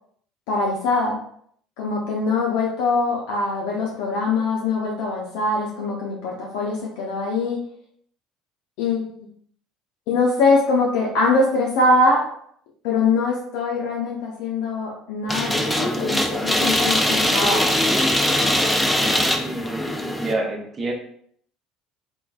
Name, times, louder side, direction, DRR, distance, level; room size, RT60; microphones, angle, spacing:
voice 1, 0.5-1.2 1.8-7.6 8.8-9.2 10.1-12.3 12.8-17.7, left 3 dB, 65° left, -2 dB, 0.5 m, -22 dB
sound 1, 15.3-20.3, left 1 dB, 5° left, 0.4 m, -21 dB
voice 2, 19.4-19.9 20.2-20.9, right 2 dB, 35° right, 2 dB, 0.7 m, -27 dB
3.1 x 2.0 x 2.4 m, 0.64 s
figure-of-eight pair, 60°, 0 cm